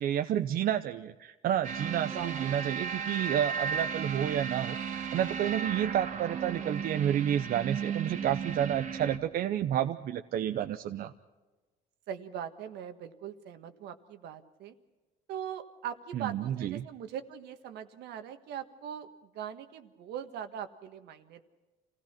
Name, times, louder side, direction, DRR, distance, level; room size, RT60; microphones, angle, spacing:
voice 1, 0.0-11.1 16.1-16.9, right 10 dB, 60° right, 8 dB, 0.8 m, -30 dB
sound 1, 1.6-9.2, right 6 dB, 45° right, 1.8 m, -35 dB
voice 2, 2.0-2.8 12.1-14.7 15.3-21.4, right 9 dB, 80° right, 8 dB, 1.6 m, -41 dB
27.0 x 17.0 x 5.9 m, 1.2 s
cardioid pair, 110°, 17 cm